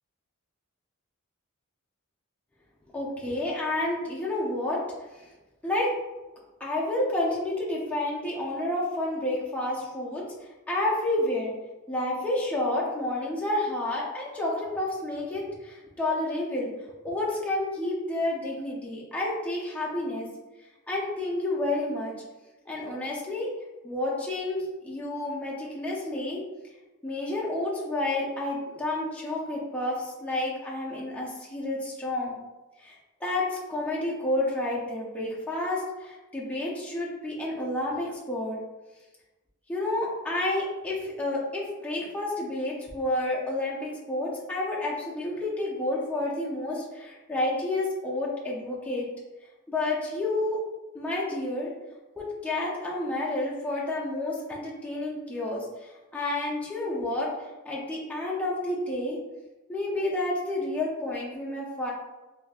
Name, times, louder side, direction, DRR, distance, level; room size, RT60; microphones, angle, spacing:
voice 1, 2.9-4.8 5.2-5.3 5.6-5.9 6.6-10.2 10.7-11.5 11.9-16.7 17.0-20.3 20.9-22.1 22.7-23.5 23.8-26.4 27.0-32.4 32.8-33.0 33.2-38.6 39.7-49.1 49.7-50.6 50.9-51.7 52.2-57.3 57.6-59.2 59.7-61.9, left 1 dB, 5° left, -5 dB, 0.5 m, -30 dB
3.7 x 2.7 x 2.3 m, 1.1 s
head